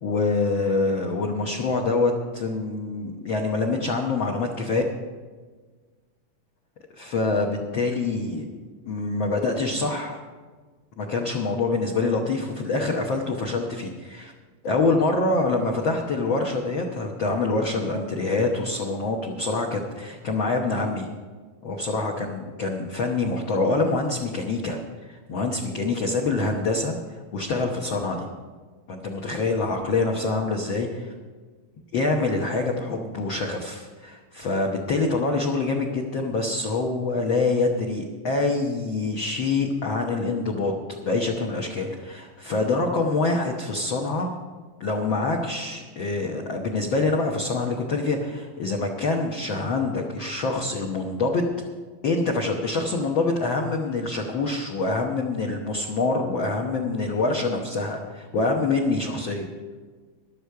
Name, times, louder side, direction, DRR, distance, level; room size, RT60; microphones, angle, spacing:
voice 1, 0.0-4.8 7.0-8.5 8.9-10.2 11.0-14.3 14.6-21.1 21.6-26.9 27.3-28.3 28.9-31.1 31.9-44.4 44.8-51.4 52.0-59.4, left 3 dB, 75° left, 0 dB, 1.1 m, -25 dB
15.0 x 11.5 x 4.7 m, 1.4 s
omnidirectional pair, 3.9 m